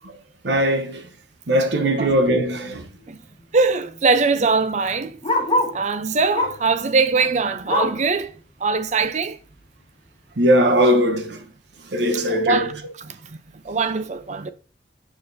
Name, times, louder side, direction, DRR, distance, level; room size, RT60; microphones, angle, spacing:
voice 1, 0.4-1.1 1.5-2.9 10.4-11.4 11.9-12.7, equal, 75° right, 0.9 m, -19 dB
Bark, 3.0-5.8 6.3-6.7 7.1-8.1 8.6-8.7 9.1-9.2 9.8-9.9, left 1 dB, 25° left, 1.3 m, -26 dB
voice 2, 3.5-5.2 5.7-9.4 12.3-12.8 13.1-13.2 13.6-14.5, right 4 dB, 40° right, 0.6 m, -22 dB
6.9 x 6.4 x 2.7 m
head